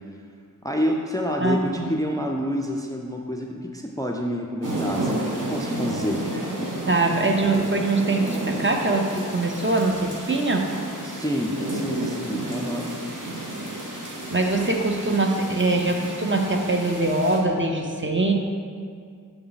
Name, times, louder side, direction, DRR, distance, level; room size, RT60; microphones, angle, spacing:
voice 1, 0.6-6.2 11.0-12.9, equal, 10° left, 1 dB, 0.4 m, -28 dB
voice 2, 1.4-1.9 6.9-10.7 14.0-18.3, right 2 dB, 35° right, 2 dB, 0.6 m, -23 dB
sound 1, 4.6-17.4, right 1 dB, 60° right, 1.1 m, -31 dB
7.1 x 3.8 x 4.0 m, 2.2 s
wide cardioid pair, 45°, 34 cm